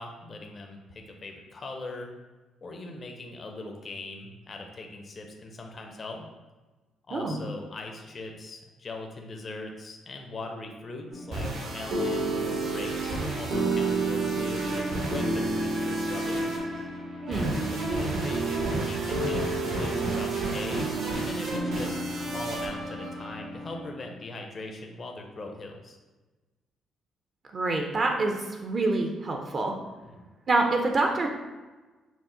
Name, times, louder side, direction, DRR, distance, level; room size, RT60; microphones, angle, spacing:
voice 1, 0.0-2.1 2.6-6.3 7.1-16.4 17.3-26.0 30.0-30.3, left 2 dB, 45° left, 3 dB, 0.6 m, -40 dB
voice 2, 7.1-7.4 17.3-17.5 27.5-28.4 28.6-29.7 30.5-31.3, right 2 dB, 45° right, 2 dB, 0.6 m, -26 dB
sound 1, 11.1-23.9, right 2 dB, 85° right, 1.2 m, -29 dB
6.1 x 2.1 x 3.8 m, 1.2 s
cardioid pair, 90°, 0 cm